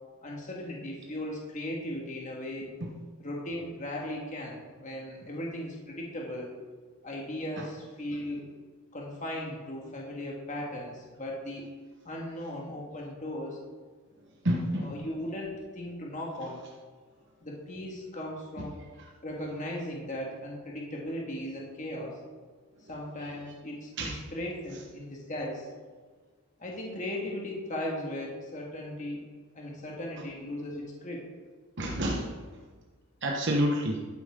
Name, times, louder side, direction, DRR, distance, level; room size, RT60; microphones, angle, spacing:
voice 1, 0.2-2.7 3.2-6.5 7.0-8.5 8.9-11.7 12.0-13.6 14.8-16.6 17.4-18.8 19.2-22.2 22.9-25.7 26.6-29.2 29.5-31.2, left 1 dB, 35° left, -2 dB, 1.8 m, -37 dB
voice 2, 14.4-14.9 24.0-24.1 31.8-32.3 33.2-34.0, equal, 55° right, 0 dB, 1.1 m, -28 dB
12.0 x 9.3 x 3.7 m, 1.5 s
head